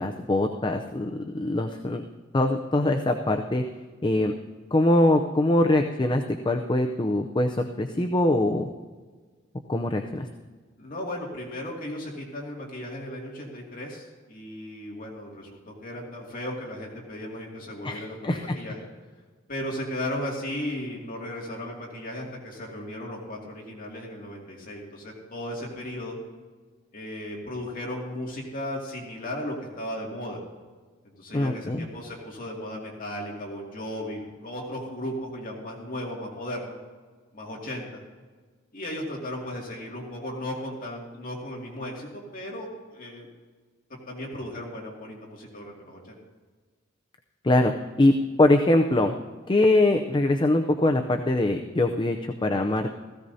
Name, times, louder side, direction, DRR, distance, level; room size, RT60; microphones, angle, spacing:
voice 1, 0.0-2.0 2.3-3.6 4.0-4.3 4.7-8.7 9.7-10.3 17.8-18.6 31.3-31.9 47.4-47.7 48.0-49.1 49.5-52.9, left 1 dB, 25° left, 5 dB, 0.5 m, -23 dB
voice 2, 10.8-18.9 19.5-26.2 26.9-30.4 31.0-36.8 37.3-38.0 38.7-43.3 43.9-46.2, left 1 dB, 45° left, -2 dB, 2.3 m, -36 dB
16.5 x 15.5 x 2.7 m, 1.4 s
head